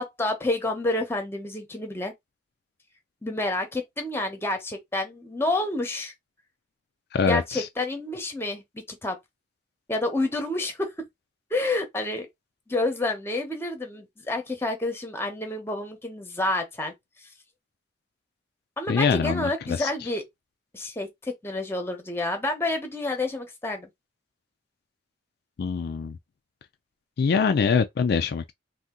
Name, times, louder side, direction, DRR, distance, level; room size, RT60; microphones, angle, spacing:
voice 1, 0.0-2.1 3.2-6.1 7.3-9.2 9.9-11.0 11.5-12.3 12.7-16.9 17.2-17.3 18.8-20.2 20.7-23.9, left 2 dB, 15° left, 0.8 m, -29 dB
voice 2, 7.1-7.7 18.9-19.9 25.6-26.2 27.2-28.5, left 5 dB, 55° left, 0.3 m, -24 dB
2.7 x 2.3 x 3.6 m
head